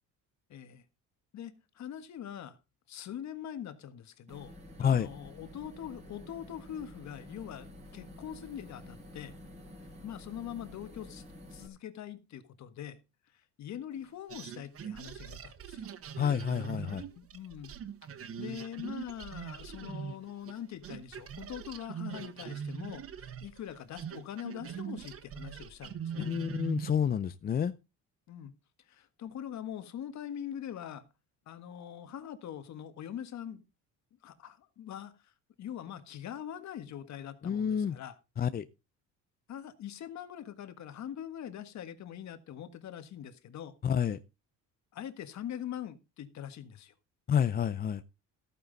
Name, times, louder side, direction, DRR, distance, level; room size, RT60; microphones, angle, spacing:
voice 1, 0.5-0.8 1.3-2.6 2.9-4.5 4.8-9.3 10.0-11.2 11.5-13.0 13.6-15.9 17.1-17.7 18.4-26.3 28.3-28.5 28.9-31.0 31.5-33.6 34.2-35.3 35.6-38.2 39.5-43.7 44.9-46.9, left 10 dB, 50° left, 1.6 m, -43 dB
sound 1, 4.3-11.7, left 1 dB, 20° right, 4.1 m, -50 dB
sound 2, 14.3-20.6 20.8-27.1, right 7 dB, 40° right, 1.2 m, -42 dB
voice 2, 16.2-17.0 26.2-27.7 37.4-38.0 38.4-38.6 43.8-44.2 47.3-48.0, left 8 dB, 25° left, 0.5 m, -29 dB
14.5 x 9.2 x 4.0 m
cardioid pair, 135°, 36 cm